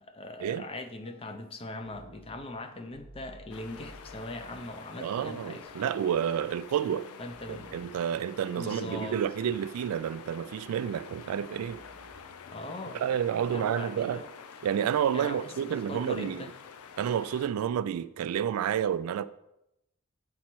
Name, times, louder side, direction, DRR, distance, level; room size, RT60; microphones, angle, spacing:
voice 1, 0.0-5.9 7.2-7.9 8.5-9.2 12.5-13.0 13.5-14.3 15.1-16.5, left 2 dB, 25° left, 0.6 m, -40 dB
sound 1, 1.0-1.6 1.8-8.5 8.8-12.8 13.2-16.9, left 1 dB, 70° left, 2.7 m, -57 dB
sound 2, 3.5-17.5, left 6 dB, 90° left, 0.5 m, -48 dB
voice 2, 5.0-7.1 7.5-11.8 12.9-14.2 14.6-16.5 17.0-19.3, right 9 dB, 75° right, 0.3 m, -30 dB
7.8 x 4.2 x 4.4 m
head